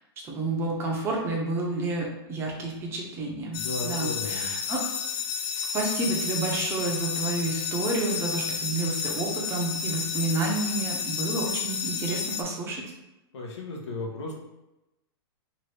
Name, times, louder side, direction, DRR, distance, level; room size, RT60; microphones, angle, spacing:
voice 1, 0.2-4.8 5.6-12.8, right 2 dB, 15° right, -1 dB, 0.6 m, -30 dB
voice 2, 3.5-4.5 13.3-14.3, left 2 dB, 90° left, 0 dB, 0.9 m, -35 dB
sound 1, 3.5-12.4, left 7 dB, 55° left, 0.4 m, -31 dB
2.8 x 2.5 x 3.2 m, 0.97 s
hypercardioid pair, 150°, 14 cm